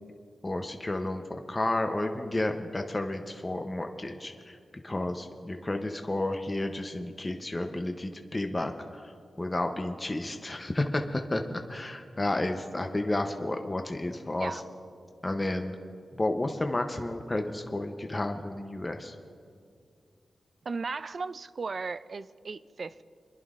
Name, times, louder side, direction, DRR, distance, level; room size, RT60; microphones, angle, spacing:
voice 1, 0.4-4.6 4.8-9.1 9.4-11.4 11.7-14.6 15.2-15.8 16.1-19.1, left 1 dB, 25° left, 5 dB, 0.7 m, -31 dB
voice 2, 20.7-23.0, right 4 dB, 55° right, 14 dB, 0.3 m, -36 dB
28.5 x 11.0 x 2.5 m, 2.3 s
cardioid pair, 70°, 0 cm